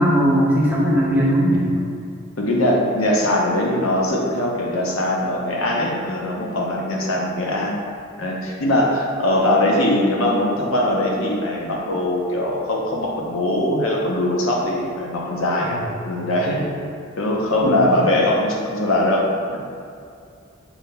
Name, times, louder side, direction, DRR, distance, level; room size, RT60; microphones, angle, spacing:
voice 1, 0.0-1.7 15.7-15.8 17.6-17.9, equal, 10° right, -7 dB, 0.9 m, -18 dB
voice 2, 2.4-7.8 8.2-16.7 17.2-19.6, left 1 dB, 80° left, -2 dB, 0.7 m, -21 dB
5.5 x 4.4 x 2.2 m, 2.4 s
head